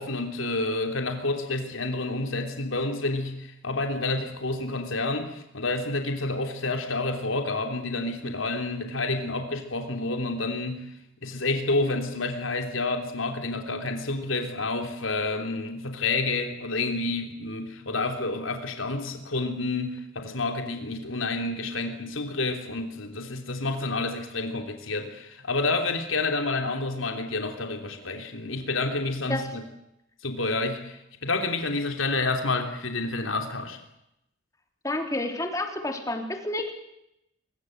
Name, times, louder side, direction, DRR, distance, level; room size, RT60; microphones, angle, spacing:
voice 1, 0.0-10.9 11.2-29.6 30.2-33.8, left 3 dB, 85° left, 5 dB, 3.2 m, -29 dB
voice 2, 34.8-36.7, left 1 dB, 15° left, 4 dB, 3.3 m, -29 dB
24.0 x 22.5 x 7.9 m, 0.83 s
head